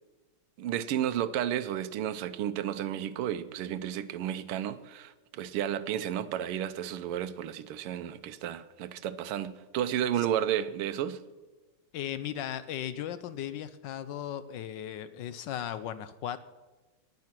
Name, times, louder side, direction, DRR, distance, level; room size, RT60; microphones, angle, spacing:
voice 1, 0.6-11.2, right 10 dB, 90° right, 1.7 m, -32 dB
voice 2, 11.9-16.4, left 10 dB, 75° left, 1.1 m, -37 dB
19.5 x 8.5 x 6.0 m
omnidirectional pair, 2.4 m